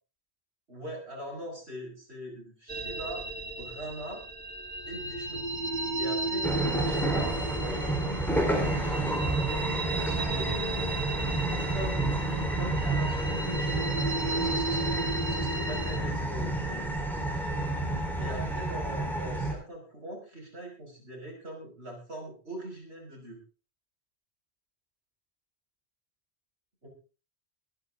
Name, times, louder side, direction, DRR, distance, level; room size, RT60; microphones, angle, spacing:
voice 1, 0.7-3.3 3.6-4.2 4.9-5.5 6.0-7.8 8.4-10.7 11.7-13.9 14.3-16.9 18.2-23.4 26.8-26.9, right 1 dB, 80° right, 0 dB, 6.1 m, -41 dB
sound 1, 2.7-16.0, right 2 dB, 50° right, 2.5 m, -34 dB
sound 2, 6.4-19.5, right 2 dB, ahead, 4.0 m, -30 dB
23.0 x 10.5 x 3.7 m, 0.33 s
omnidirectional pair, 1.1 m